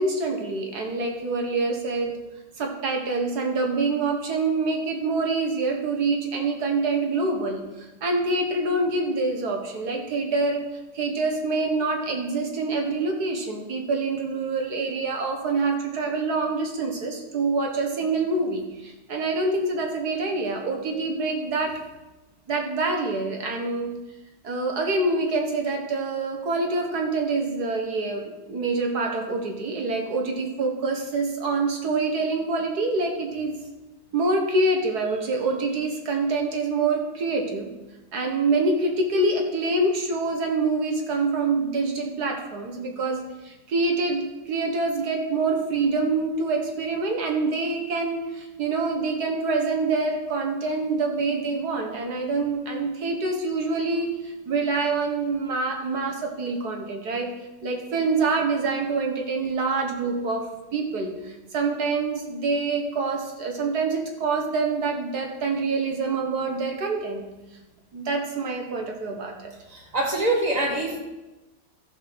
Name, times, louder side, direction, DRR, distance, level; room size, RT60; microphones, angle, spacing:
voice 1, 0.0-2.1 2.6-10.7 10.9-21.7 22.5-23.9 24.4-33.5 34.1-37.7 38.1-57.3 57.6-60.5 60.7-67.2 67.9-69.5, right 3 dB, 60° right, 2 dB, 2.0 m, -26 dB
voice 2, 69.7-71.0, right 2 dB, 20° right, 0 dB, 1.9 m, -24 dB
14.5 x 5.0 x 6.2 m, 1.1 s
omnidirectional pair, 1.9 m